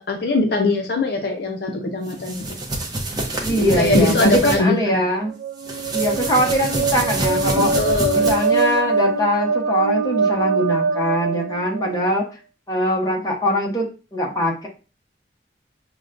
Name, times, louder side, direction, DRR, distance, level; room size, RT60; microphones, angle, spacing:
voice 1, 0.0-2.6 3.5-5.0 7.6-8.3, left 2 dB, 60° left, 3 dB, 0.5 m, -21 dB
sound 1, 2.1-4.6 5.6-8.7, right 1 dB, 20° right, 0.7 m, -27 dB
voice 2, 3.4-5.3 5.9-7.7 8.1-12.2 12.7-14.7, equal, 20° left, -1 dB, 0.9 m, -22 dB
sound 2, 5.3-12.1, right 4 dB, 90° right, 0.3 m, -23 dB
6.0 x 2.2 x 2.5 m, 0.33 s
head